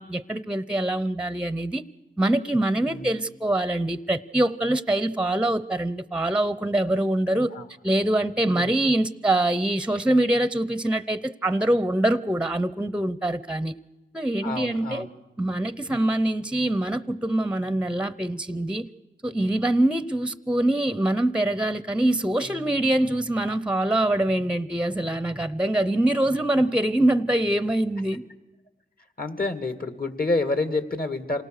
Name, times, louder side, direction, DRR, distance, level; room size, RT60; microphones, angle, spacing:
voice 1, 0.0-1.8 2.2-7.5 7.8-13.7 14.1-15.1 15.4-18.9 19.2-28.2, right 1 dB, 5° right, 0.7 m, -24 dB
voice 2, 14.4-15.1 29.2-31.4, left 2 dB, 50° left, 2.3 m, -28 dB
27.0 x 18.5 x 6.6 m
cardioid pair, 45°, 20 cm